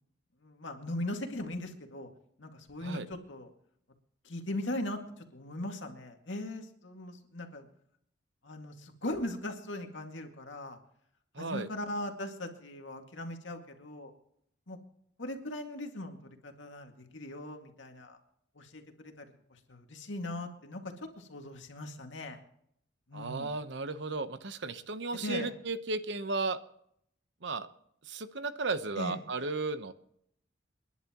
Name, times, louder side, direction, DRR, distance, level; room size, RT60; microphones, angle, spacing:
voice 1, 0.4-2.1 2.4-3.5 4.2-7.7 8.4-10.8 11.4-14.1 14.7-14.8 15.2-18.2 18.6-22.4 23.1-23.5 25.2-25.5 29.0-29.2, left 1 dB, 75° left, 4 dB, 2.2 m, -39 dB
voice 2, 11.3-11.7 23.1-26.6 27.4-27.7 28.0-29.9, right 3 dB, 65° right, 11 dB, 1.0 m, -34 dB
29.0 x 11.0 x 3.0 m, 0.70 s
head